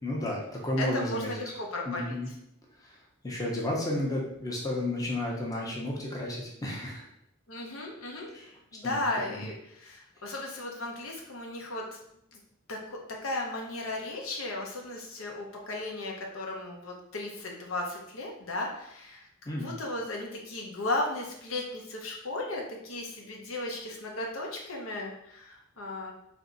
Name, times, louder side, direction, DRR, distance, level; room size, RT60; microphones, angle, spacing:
voice 1, 0.0-1.3 1.9-2.3 2.8-3.0 3.2-7.1 8.3-8.5 8.8-9.0 9.3-9.4 19.5-19.7, left 1 dB, 15° left, -2 dB, 0.7 m, -32 dB
voice 2, 0.8-2.2 7.5-8.3 8.7-12.0 12.3-12.4 12.7-26.1, left 2 dB, 75° left, 0 dB, 0.8 m, -35 dB
3.4 x 2.7 x 3.9 m, 0.78 s
head